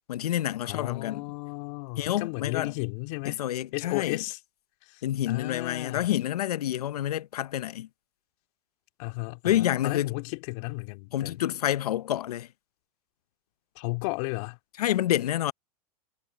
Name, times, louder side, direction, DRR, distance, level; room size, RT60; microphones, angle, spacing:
voice 1, 0.1-1.2 2.0-2.7 3.2-4.2 5.0-7.9 9.4-10.2 11.1-12.5 14.8-15.5, left 12 dB, 90° left, 0.7 m, -28 dB
voice 2, 0.6-3.4 3.7-4.4 4.8-6.1 9.0-11.4 13.8-14.6, left 26 dB, 55° left, 2.6 m, -34 dB
hypercardioid pair, 125°, 19 cm